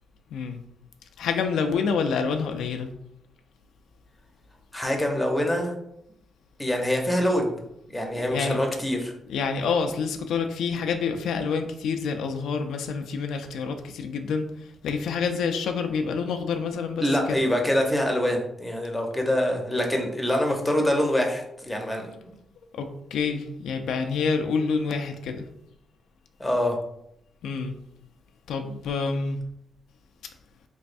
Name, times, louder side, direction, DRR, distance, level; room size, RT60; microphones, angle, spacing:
voice 1, 0.3-0.6 1.2-2.9 8.2-8.6 9.3-17.4 22.7-25.5 27.4-27.7 28.5-29.4, left 5 dB, 90° left, 5 dB, 0.3 m, -27 dB
voice 2, 4.7-5.7 6.6-7.6 7.9-9.1 17.0-22.4 26.4-26.8, left 1 dB, 5° left, 1 dB, 0.7 m, -25 dB
3.4 x 3.1 x 2.5 m, 0.76 s
cardioid pair, 105°, 0 cm